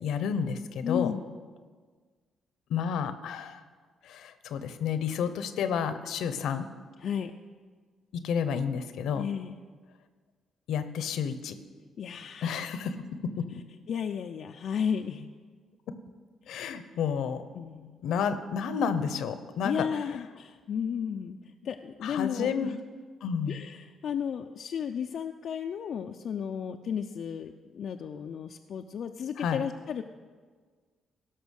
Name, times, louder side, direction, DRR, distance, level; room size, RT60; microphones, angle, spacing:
voice 1, 0.0-1.1 2.7-3.6 4.0-6.7 8.1-9.3 10.7-11.6 12.4-13.0 13.2-13.6 16.5-17.4 18.0-19.9 22.0-22.7 23.2-23.6 29.4-29.6, left 7 dB, 80° left, 11 dB, 0.8 m, -30 dB
voice 2, 0.8-1.2 7.0-7.3 9.1-9.6 12.0-12.7 13.9-15.3 16.5-16.7 17.5-18.0 19.6-21.4 21.6-22.8 23.5-30.0, left 7 dB, 60° left, 4 dB, 0.5 m, -34 dB
16.5 x 6.0 x 6.4 m, 1.5 s
cardioid pair, 90°, 0 cm